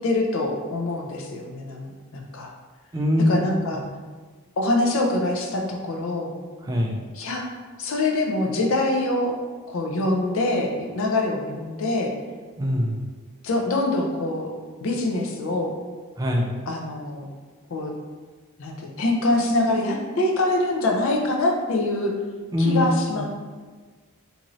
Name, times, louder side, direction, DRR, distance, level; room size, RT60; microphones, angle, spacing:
voice 1, 0.0-2.5 3.3-3.8 4.6-6.3 7.1-7.5 7.8-9.4 9.7-12.1 13.4-14.5 14.8-15.7 16.7-17.3 17.7-17.9 18.6-22.1 22.6-23.2, left 2 dB, 60° left, 1 dB, 0.4 m, -24 dB
voice 2, 2.9-3.4 4.0-4.1 6.7-7.0 12.6-13.0 16.2-16.5 22.5-22.8 23.1-23.2, left 1 dB, 15° right, -1 dB, 0.3 m, -22 dB
2.6 x 2.5 x 3.0 m, 1.4 s
head